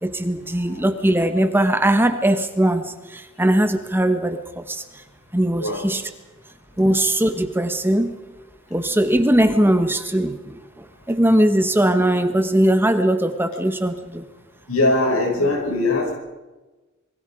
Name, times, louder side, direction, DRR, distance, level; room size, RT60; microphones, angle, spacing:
voice 1, 0.0-4.8 5.3-6.0 6.8-8.2 8.7-14.2, right 1 dB, 10° right, 8 dB, 1.3 m, -20 dB
voice 2, 5.6-5.9 6.9-7.0 14.7-16.2, left 2 dB, 85° left, 2 dB, 6.7 m, -21 dB
26.5 x 22.5 x 5.1 m, 1.2 s
head